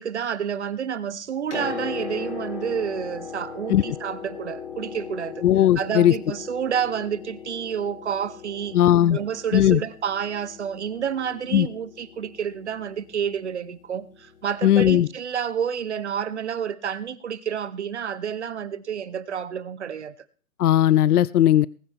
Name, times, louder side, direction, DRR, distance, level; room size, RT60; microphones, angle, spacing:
voice 1, 0.0-5.4 5.8-8.8 9.1-20.1, right 8 dB, 50° right, 0.9 m, -29 dB
Piano, 1.2-15.0 16.1-16.2, left 7 dB, 50° left, 4.0 m, -39 dB
voice 2, 5.4-6.1 8.7-9.2 9.5-9.8 11.5-11.7 14.6-15.1 20.6-21.7, left 12 dB, 80° left, 0.5 m, -17 dB
19.5 x 9.8 x 3.5 m
hypercardioid pair, 170°, 45 cm